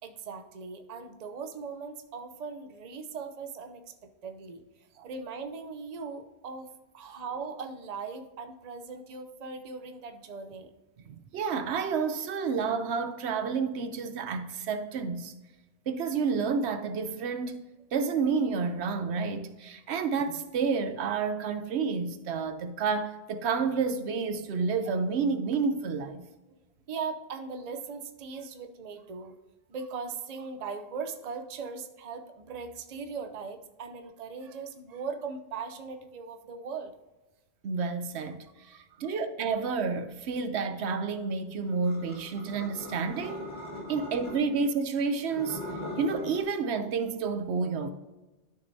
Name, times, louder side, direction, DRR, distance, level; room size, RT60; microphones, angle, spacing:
voice 1, 0.0-3.9 4.2-4.6 5.0-10.7 26.9-29.3 29.7-36.9 38.6-39.1, right 5 dB, 45° right, 0.7 m, -39 dB
voice 2, 11.1-15.3 15.9-17.6 17.9-26.2 37.6-43.5 43.9-45.6 46.0-47.9, right 5 dB, 80° right, 0.9 m, -30 dB
sound 1, 41.8-44.7 45.2-46.4, left 1 dB, 45° left, 2.0 m, -40 dB
12.0 x 6.6 x 2.7 m
omnidirectional pair, 1.1 m